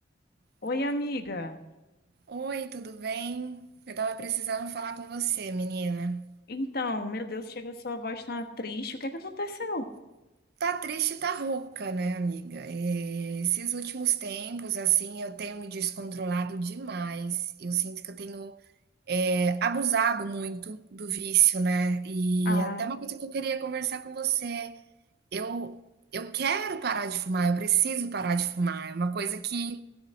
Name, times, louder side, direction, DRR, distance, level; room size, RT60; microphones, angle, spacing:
voice 1, 0.6-1.6 6.5-9.9 22.4-22.9, left 2 dB, 55° left, 1.3 m, -33 dB
voice 2, 2.3-6.3 10.6-18.6 19.1-24.8 25.3-25.8 26.1-29.8, right 6 dB, 55° right, 0.6 m, -29 dB
16.0 x 7.2 x 6.4 m
head